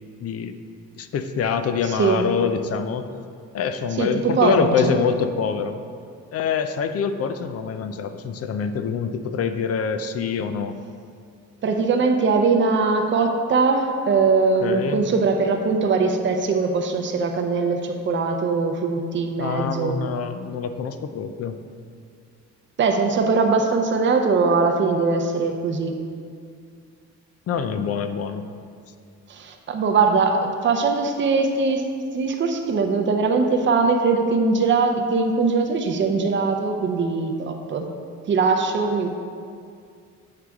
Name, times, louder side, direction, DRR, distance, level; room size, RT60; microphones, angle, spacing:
voice 1, 0.2-0.5 1.0-3.1 3.5-5.8 6.3-10.8 14.6-15.0 19.4-21.6 27.5-28.4, left 6 dB, 55° left, 9 dB, 0.5 m, -25 dB
voice 2, 4.0-5.0 11.6-20.0 22.8-25.9 29.3-31.8 32.1-37.9 38.3-39.1, right 4 dB, 40° right, 4 dB, 0.6 m, -21 dB
7.7 x 4.8 x 3.5 m, 2.2 s
cardioid pair, 90°, 30 cm